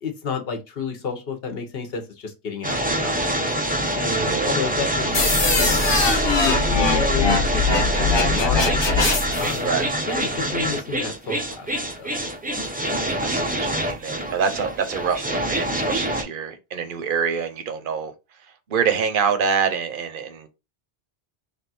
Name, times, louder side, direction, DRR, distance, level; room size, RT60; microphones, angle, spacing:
voice 1, 0.0-3.4 3.9-6.2 6.4-8.9 9.4-12.1, left 4 dB, 65° left, 1.0 m, -31 dB
sound 1, 2.6-16.2, right 1 dB, 15° right, 0.3 m, -25 dB
voice 2, 4.1-4.5 9.6-9.9 13.2-18.1 18.4-20.5, right 6 dB, 60° right, 0.8 m, -26 dB
sound 2, 5.1-9.5, left 3 dB, 30° left, 0.7 m, -21 dB
3.4 x 2.3 x 4.0 m
omnidirectional pair, 1.1 m